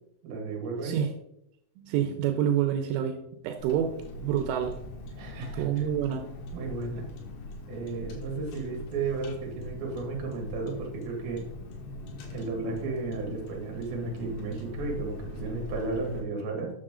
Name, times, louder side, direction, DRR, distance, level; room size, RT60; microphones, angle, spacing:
voice 1, 0.2-1.0 5.2-5.7 6.5-7.1 7.7-11.5 12.3-16.7, right 3 dB, 55° right, 0 dB, 3.3 m, -34 dB
voice 2, 0.8-1.1 1.8-3.2 3.4-3.9 4.2-4.7 5.6-6.2, right 9 dB, 85° right, 5 dB, 3.2 m, -27 dB
Car, 3.6-16.2, left 2 dB, 90° left, 4.3 m, -41 dB
9.3 x 6.5 x 3.7 m, 0.80 s
omnidirectional pair, 5.7 m